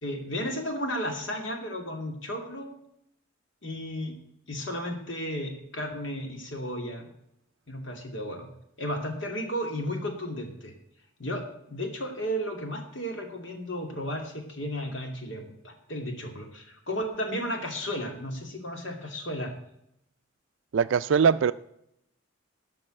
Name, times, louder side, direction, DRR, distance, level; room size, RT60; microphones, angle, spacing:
voice 1, 0.0-2.8 3.6-4.2 4.5-7.1 7.7-8.5 8.8-10.7 11.2-19.5, equal, 65° left, 2.5 m, -34 dB
voice 2, 20.7-21.5, right 6 dB, 65° right, 0.4 m, -21 dB
13.0 x 5.5 x 7.7 m
head